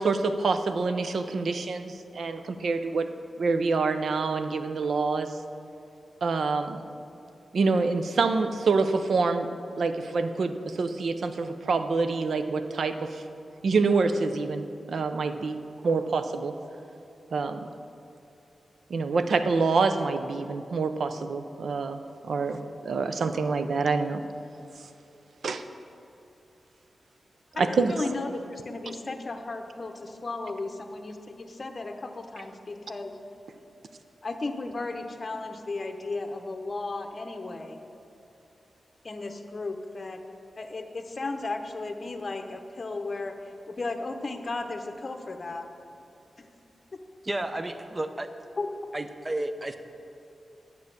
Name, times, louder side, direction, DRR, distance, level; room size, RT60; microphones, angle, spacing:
voice 1, 0.0-3.1 3.4-5.3 6.2-6.8 7.5-9.5 9.8-13.2 13.6-15.6 15.8-16.5 17.3-17.7 18.9-22.0 22.2-24.2 25.4-25.6 27.6-27.9, right 4 dB, 75° right, 9 dB, 0.5 m, -26 dB
voice 2, 27.5-33.1 34.2-37.8 39.0-40.2 40.6-43.3 43.7-45.7 46.4-46.5 46.9-47.0 48.6-48.7, left 3 dB, 40° left, 6 dB, 0.8 m, -35 dB
voice 3, 47.2-48.3 48.9-49.8, right 1 dB, 25° right, 8 dB, 0.6 m, -32 dB
9.7 x 6.9 x 6.5 m, 2.8 s
wide cardioid pair, 115°, 0 cm